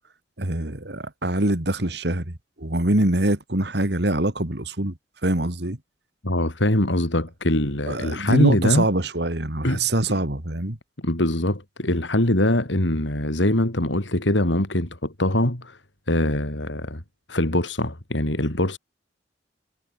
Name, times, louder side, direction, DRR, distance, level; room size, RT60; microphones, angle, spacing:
voice 1, 0.4-2.3 2.6-4.9 5.2-5.8 7.9-10.8, right 1 dB, 65° right, 2.6 m, -24 dB
voice 2, 6.2-8.9 9.6-9.9 11.0-15.8 16.1-17.0 17.3-18.8, left 1 dB, 90° left, 3.7 m, -23 dB
head